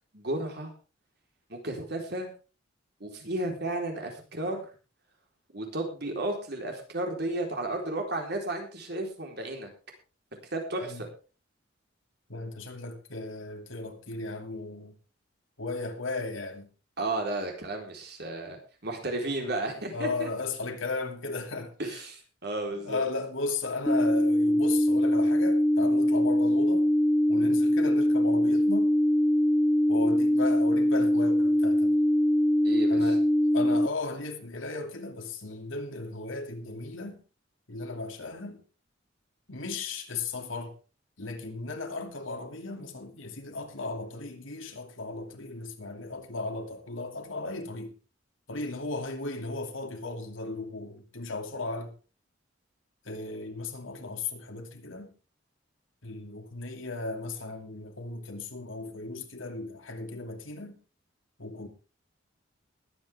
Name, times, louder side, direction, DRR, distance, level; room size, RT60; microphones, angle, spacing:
voice 1, 0.1-0.7 1.5-2.3 3.0-4.7 5.5-9.7 10.5-11.1 17.0-20.3 21.8-23.0 32.6-33.1, right 2 dB, 55° right, 4.1 m, -33 dB
voice 2, 12.3-14.9 15.6-16.7 19.4-19.5 19.9-22.0 22.7-26.9 27.3-28.9 29.9-32.0 32.9-33.2 33.5-37.2 37.7-38.6 39.5-40.7 41.2-47.9 48.5-51.9 53.0-55.1 56.0-60.8 61.4-61.7, left 3 dB, 85° left, 2.7 m, -36 dB
sound 1, 23.9-33.9, equal, 10° left, 0.5 m, -23 dB
21.5 x 9.0 x 3.6 m
head